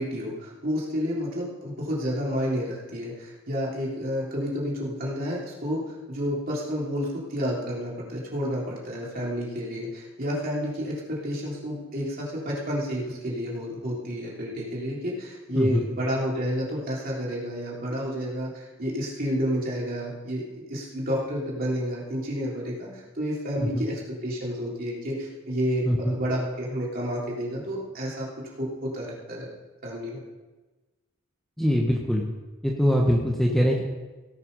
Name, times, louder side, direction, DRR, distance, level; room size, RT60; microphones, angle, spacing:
voice 1, 0.0-5.8 6.1-28.3 28.6-29.5 29.8-30.2, equal, 45° right, -5 dB, 3.5 m, -30 dB
voice 2, 15.5-15.8 23.6-23.8 25.8-26.2 31.6-32.2 32.6-33.8, equal, ahead, -1 dB, 1.1 m, -23 dB
17.5 x 6.8 x 5.4 m, 1.2 s
head